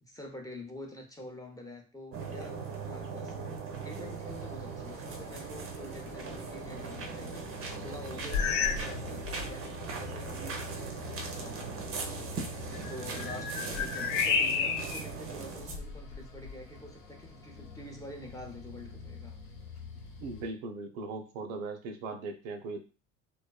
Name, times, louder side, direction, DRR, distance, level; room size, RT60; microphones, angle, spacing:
voice 1, 0.0-3.4 3.8-10.7 11.3-11.8 12.8-19.4, left 1 dB, 10° left, 1 dB, 0.6 m, -47 dB
sound 1, 2.1-15.8, right 4 dB, 35° right, 0.6 m, -39 dB
sound 2, 4.2-20.5, left 5 dB, 80° left, 1.2 m, -48 dB
sound 3, 8.3-8.9 9.2-9.6 10.2-10.3 12.7-15.1 15.6-16.6, left 6 dB, 60° left, 0.5 m, -31 dB
voice 2, 20.2-22.8, right 3 dB, 80° right, 6 dB, 0.6 m, -39 dB
2.5 x 2.2 x 2.2 m, 0.33 s
hypercardioid pair, 80°, 40 cm